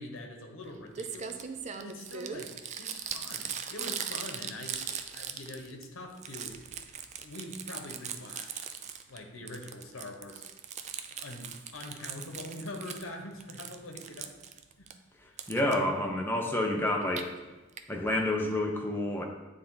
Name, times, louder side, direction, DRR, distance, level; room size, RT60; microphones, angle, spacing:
voice 1, 0.0-1.4 1.7-4.8 5.1-6.6 7.2-8.6 9.1-10.4 11.2-14.4 14.8-14.9 15.2-15.4 16.4-16.5, left 1 dB, 70° left, 2 dB, 1.0 m, -44 dB
Crumpling crinkling, 0.6-0.7 0.9-5.8 6.1-9.2 9.5-13.1 13.4-14.9 15.4-15.8 16.9-17.2 17.8-17.9 18.1-18.2 18.4-18.5, right 7 dB, 35° right, 0.3 m, -39 dB
voice 2, 15.5-17.3 17.9-19.2, left 1 dB, 10° left, 0 dB, 0.7 m, -29 dB
9.1 x 3.4 x 4.0 m, 1.1 s
head